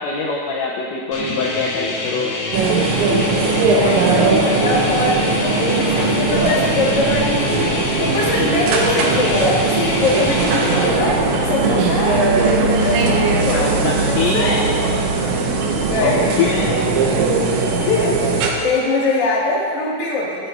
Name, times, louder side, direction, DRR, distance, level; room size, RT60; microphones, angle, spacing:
voice 1, 0.0-2.3 13.5-14.6 16.0-16.8 17.8-18.2, left 4 dB, 80° left, -3 dB, 2.8 m, -23 dB
sound 1, 1.1-10.9, left 2 dB, 60° left, 2.7 m, -27 dB
sound 2, 2.5-18.5, right 3 dB, 75° right, 3.2 m, -19 dB
voice 2, 3.7-7.7 8.0-11.2 11.5-12.3 12.5-14.6 15.8-16.3 17.9-18.1 18.6-20.5, left 2 dB, 40° left, -6 dB, 2.3 m, -22 dB
sound 3, 6.2-11.2, right 1 dB, 45° right, 2.7 m, -37 dB
25.0 x 9.0 x 2.7 m, 2.3 s
omnidirectional pair, 5.8 m